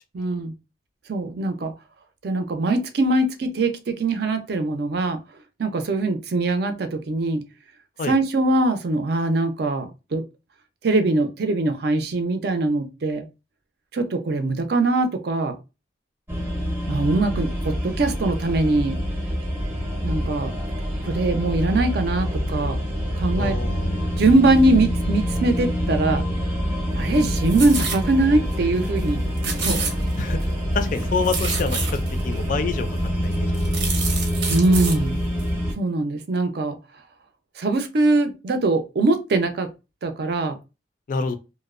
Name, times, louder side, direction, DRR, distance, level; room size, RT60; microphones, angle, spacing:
voice 1, 0.1-0.5 1.1-1.7 2.2-5.2 5.6-7.4 8.1-10.2 10.8-13.2 13.9-15.6 16.9-19.0 20.0-20.5 21.0-22.8 23.1-23.6 24.2-26.2 26.9-29.8 34.5-35.2 35.8-36.8 37.6-39.7 40.0-40.6, right 2 dB, 60° right, 0.4 m, -22 dB
sound 1, 16.3-35.7, equal, 15° right, 0.6 m, -26 dB
voice 2, 23.4-24.0 29.6-29.8 30.2-30.5 30.7-32.9 33.2-33.8 41.1-41.4, left 4 dB, 45° left, 0.3 m, -28 dB
sound 2, 27.1-28.0 28.5-28.6 28.8-29.1 29.4-30.4 30.8-32.2 32.9-33.0 33.3-35.0 35.4-35.5, right 5 dB, 85° right, 0.7 m, -29 dB
2.6 x 2.0 x 2.4 m
head